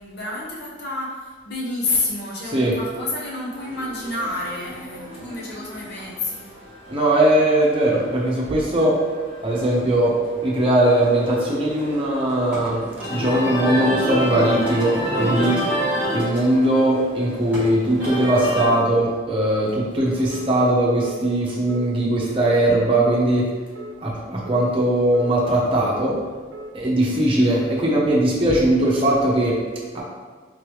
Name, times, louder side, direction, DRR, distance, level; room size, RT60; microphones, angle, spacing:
voice 1, 0.0-6.5 27.1-27.5, left 2 dB, 55° left, -4 dB, 0.9 m, -29 dB
sound 1, 3.5-18.7, equal, 10° right, 1.4 m, -30 dB
voice 2, 6.9-9.0 9.4-10.1 10.4-15.6 16.1-23.5 24.0-26.2 26.7-29.6 29.9-30.0, right 1 dB, 30° right, -5 dB, 0.8 m, -20 dB
sound 2, 16.2-16.4 16.9-17.1 17.5-17.8 18.2-18.4 18.9-19.1 19.6-19.8 20.3-20.5 21.0-21.2 21.7-21.9 22.4-22.6 23.1-23.3 23.7-24.0 24.4-24.7 25.1-25.3 25.8-26.0 26.5-26.7, right 1 dB, 65° right, 0.4 m, -38 dB
3.8 x 3.3 x 3.1 m, 1.4 s
head